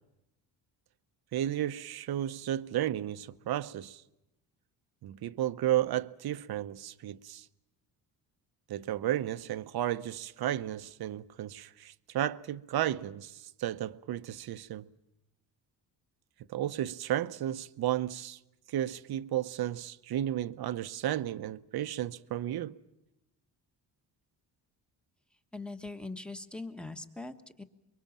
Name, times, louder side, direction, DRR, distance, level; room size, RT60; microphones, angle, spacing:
voice 1, 1.3-4.0 5.0-7.5 8.7-14.9 16.5-18.4 18.7-22.8, right 12 dB, 60° right, 0.8 m, -33 dB
voice 2, 25.5-27.6, left 2 dB, ahead, 1.3 m, -41 dB
24.5 x 23.0 x 7.4 m
cardioid pair, 120°, 41 cm